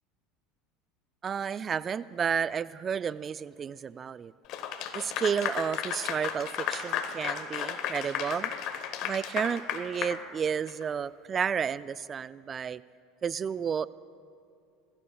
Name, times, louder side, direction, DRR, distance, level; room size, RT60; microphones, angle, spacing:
voice 1, 1.2-4.3 4.9-8.5 9.0-12.8 13.2-13.9, right 7 dB, 35° right, 17 dB, 0.3 m, -31 dB
Clapping / Applause, 4.5-10.8, left 8 dB, 60° left, 1.0 m, -34 dB
21.0 x 15.0 x 2.3 m, 2.4 s
hypercardioid pair, 95°, 0 cm